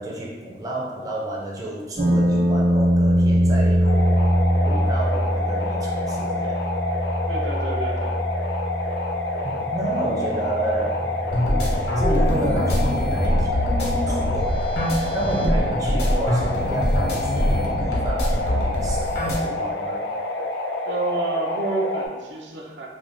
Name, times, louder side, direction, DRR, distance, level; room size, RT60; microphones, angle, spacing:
voice 1, 0.0-4.2 4.6-6.6 9.4-11.4 12.0-20.0, right 1 dB, 20° right, -3 dB, 0.4 m, -31 dB
sound 1, 2.0-16.0, equal, 55° right, 0.8 m, -24 dB
sound 2, 3.8-22.1, left 2 dB, 80° left, 0.4 m, -28 dB
voice 2, 7.3-8.1 15.4-15.5 20.9-22.9, right 2 dB, 80° right, -1 dB, 0.5 m, -29 dB
sound 3, 11.3-19.4, equal, 65° left, 0.8 m, -23 dB
2.5 x 2.2 x 3.4 m, 1.3 s
head